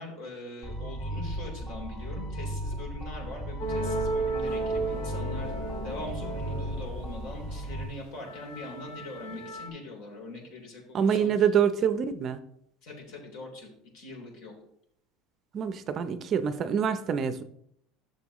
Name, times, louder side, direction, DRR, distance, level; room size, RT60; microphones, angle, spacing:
voice 1, 0.0-5.5 5.8-11.3 12.8-14.5, left 2 dB, 65° left, 0 dB, 3.6 m, -42 dB
sound 1, 0.6-7.8, right 1 dB, 30° left, 1.5 m, -36 dB
sound 2, 3.6-7.7 8.1-9.7, right 2 dB, 90° left, 2.0 m, -34 dB
voice 2, 10.9-12.4 15.5-17.4, right 7 dB, 35° right, 11 dB, 0.6 m, -26 dB
12.0 x 6.8 x 3.1 m, 0.71 s
cardioid pair, 150°, 0 cm